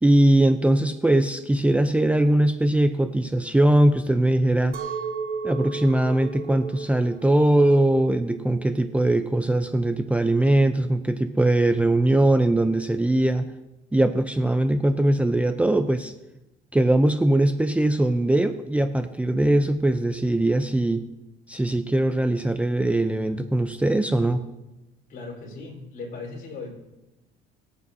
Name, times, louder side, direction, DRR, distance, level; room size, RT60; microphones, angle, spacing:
voice 1, 0.0-4.8 5.4-13.5 13.9-16.1 16.7-21.1 21.5-24.4, right 1 dB, 10° right, 8 dB, 0.6 m, -21 dB
Chink clink, 4.7-9.9, right 5 dB, 65° right, 1.5 m, -35 dB
voice 2, 25.1-26.7, left 3 dB, 55° left, -2 dB, 4.2 m, -37 dB
24.0 x 8.2 x 2.8 m, 0.98 s
cardioid pair, 110°, 17 cm